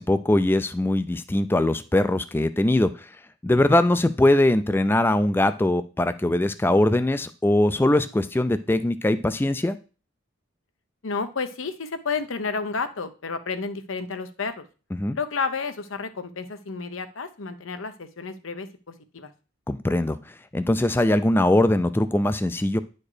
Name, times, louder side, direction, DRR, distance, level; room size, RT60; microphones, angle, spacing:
voice 1, 0.0-3.1 3.4-9.8 14.9-15.2 19.7-20.2 20.5-22.8, left 1 dB, 10° left, 11 dB, 0.3 m, -21 dB
voice 2, 11.0-14.7 15.1-19.3, left 4 dB, 90° left, 9 dB, 0.8 m, -31 dB
9.7 x 4.4 x 4.9 m, 0.36 s
head